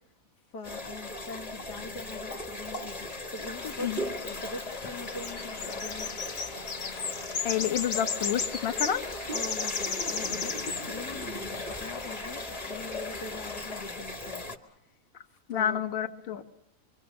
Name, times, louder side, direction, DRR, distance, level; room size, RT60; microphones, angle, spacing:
voice 1, 0.5-6.1 9.3-14.8 15.5-15.9, left 3 dB, 90° left, 3 dB, 2.2 m, -42 dB
sound 1, 0.6-14.6, left 1 dB, 25° left, 1.5 m, -38 dB
sound 2, 3.4-14.0, left 6 dB, 60° left, 1.4 m, -37 dB
voice 2, 7.4-9.0 15.5-16.4, left 9 dB, 45° left, 7 dB, 1.3 m, -29 dB
26.0 x 24.5 x 7.0 m, 0.85 s
omnidirectional pair, 1.7 m